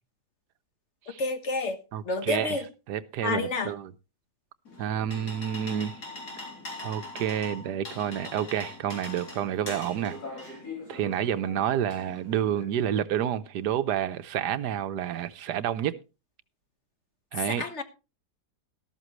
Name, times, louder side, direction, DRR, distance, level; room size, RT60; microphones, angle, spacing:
voice 1, 1.2-2.6 3.2-3.7 17.5-17.8, left 3 dB, 45° left, 1.5 m, -30 dB
voice 2, 1.9-3.9 4.8-5.9 6.8-10.2 10.4-10.6 10.9-16.0 17.3-17.7, right 10 dB, 85° right, 1.4 m, -29 dB
sound 1, 4.7-12.6, left 3 dB, 75° left, 3.9 m, -42 dB
13.0 x 13.0 x 3.1 m
omnidirectional pair, 1.7 m